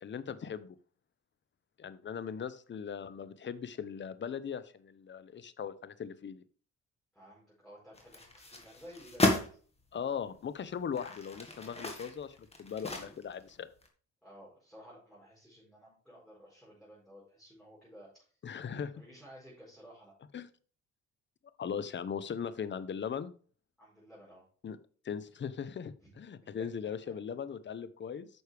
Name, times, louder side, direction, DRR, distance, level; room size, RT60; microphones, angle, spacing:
voice 1, 0.0-0.8 1.8-6.4 9.9-13.7 18.4-18.9 20.3-20.5 21.6-23.3 24.6-24.8 25.0-28.3, left 7 dB, 40° left, 14 dB, 0.7 m, -39 dB
voice 2, 7.1-9.6 14.2-18.3 18.9-20.1 23.8-24.5 26.0-26.1 26.6-26.9, equal, ahead, -7 dB, 4.5 m, -54 dB
sound 1, 7.9-9.5 10.2-10.3 10.8-13.5 13.8-13.9, left 2 dB, 20° left, 1.8 m, -34 dB
9.5 x 6.3 x 3.4 m, 0.43 s
cardioid pair, 90°, 30 cm